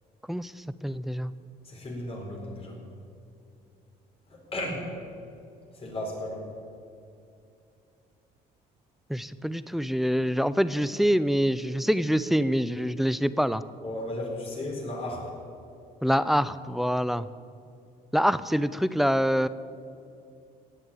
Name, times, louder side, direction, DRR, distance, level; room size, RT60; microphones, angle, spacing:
voice 1, 0.3-1.3 9.1-13.6 16.0-17.3 18.1-19.5, equal, ahead, 15 dB, 0.4 m, -25 dB
voice 2, 1.6-2.8 4.3-4.9 5.7-6.5 13.8-15.2, left 1 dB, 35° left, -1 dB, 4.3 m, -35 dB
17.5 x 6.6 x 9.0 m, 2.6 s
cardioid pair, 110°, 17 cm